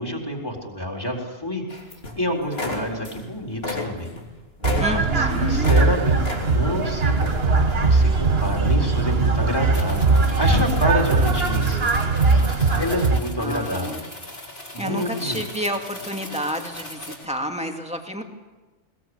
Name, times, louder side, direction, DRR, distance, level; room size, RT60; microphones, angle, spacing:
voice 1, 0.0-1.6 2.2-4.1 4.9-11.9 12.8-14.0 14.7-15.4, equal, 20° left, 1 dB, 4.1 m, -27 dB
sound 1, 1.7-2.2 2.5-3.3 3.5-5.9 6.2-6.8 7.2-7.4, left 2 dB, 70° left, 3.4 m, -31 dB
sound 2, 4.6-13.2, right 3 dB, 65° right, 1.7 m, -20 dB
voice 2, 4.8-5.8 13.4-14.0 14.8-18.2, equal, 5° right, 3 dB, 2.4 m, -29 dB
sound 3, 9.7-17.2, left 1 dB, 55° left, 4.6 m, -39 dB
22.0 x 21.0 x 8.0 m, 1.2 s
omnidirectional pair, 1.1 m